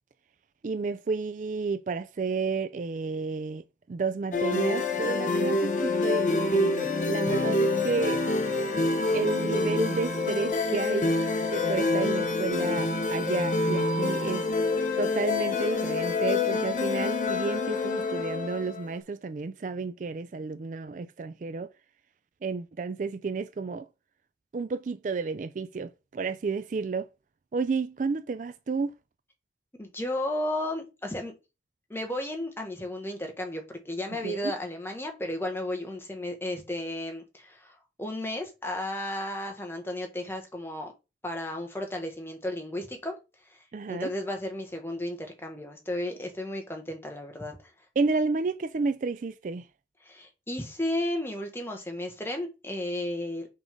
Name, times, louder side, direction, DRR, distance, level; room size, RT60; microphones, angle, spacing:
voice 1, 0.6-3.6 3.9-8.2 9.1-11.1 11.5-14.6 15.0-21.7 22.4-23.9 24.5-27.1 27.5-28.9 34.2-34.5 43.7-44.1 48.0-49.7, right 4 dB, 45° right, 0.3 m, -31 dB
sound 1, 4.3-18.9, left 3 dB, 45° left, 1.0 m, -27 dB
voice 2, 29.8-31.4 31.9-40.9 41.2-47.7 50.0-53.5, left 1 dB, 15° left, 1.4 m, -34 dB
6.1 x 3.6 x 5.2 m
head